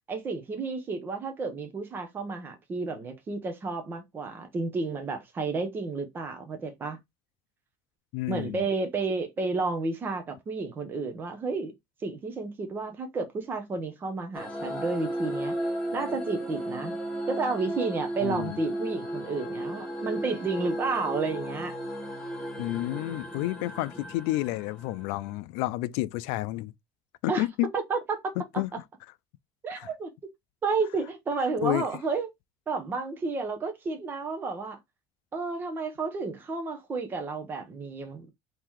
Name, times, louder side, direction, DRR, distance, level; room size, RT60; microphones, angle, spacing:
voice 1, 0.1-7.0 8.3-11.7 12.0-15.5 15.9-16.9 17.3-21.7 27.3-27.4 27.7-28.3 29.6-30.1 30.6-32.3 32.7-34.8 35.3-38.3, right 4 dB, 20° right, 0.7 m, -31 dB
voice 2, 8.1-8.7 18.2-18.6 22.6-26.7 27.2-27.7 28.4-28.7 29.8-29.9 31.6-31.9, left 17 dB, 85° left, 0.4 m, -30 dB
sound 1, 14.3-25.3, right 1 dB, 5° left, 1.3 m, -35 dB
3.8 x 2.8 x 4.5 m
cardioid pair, 180°, 11 cm